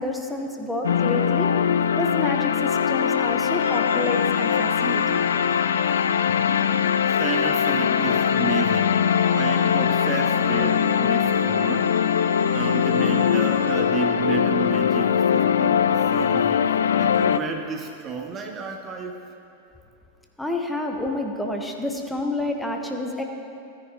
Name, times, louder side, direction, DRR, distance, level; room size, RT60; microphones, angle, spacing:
voice 1, 0.0-1.5 2.0-5.2 20.4-23.2, left 2 dB, 5° left, 2 dB, 1.0 m, -29 dB
sound 1, 0.8-17.4, left 8 dB, 65° left, 0.3 m, -21 dB
Organ, 3.6-14.3, left 2 dB, 75° right, 1.4 m, -37 dB
voice 2, 6.0-6.4 7.2-9.0 9.3-11.9 12.5-16.7 17.0-19.2, right 5 dB, 25° right, 3 dB, 0.7 m, -31 dB
16.0 x 10.0 x 2.8 m, 2.5 s
figure-of-eight pair, 90°, 0 cm